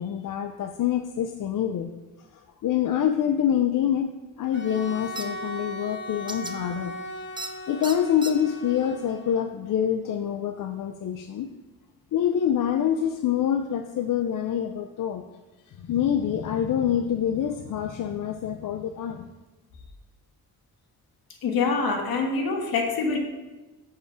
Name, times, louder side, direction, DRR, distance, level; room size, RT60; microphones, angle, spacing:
voice 1, 0.0-1.9 2.3-4.1 4.4-7.0 7.7-11.5 12.1-15.2 15.8-19.3, left 9 dB, 60° left, 7 dB, 0.6 m, -26 dB
Bowed string instrument, 4.5-9.5, left 1 dB, 30° left, 1.1 m, -38 dB
sound 1, 5.2-5.3 6.3-6.5 7.4-7.5 7.8-8.3, right 2 dB, 15° right, 0.6 m, -35 dB
voice 2, 21.4-23.2, left 4 dB, 75° left, 3 dB, 1.5 m, -25 dB
6.8 x 5.6 x 4.9 m, 1.2 s
cardioid pair, 80°, 36 cm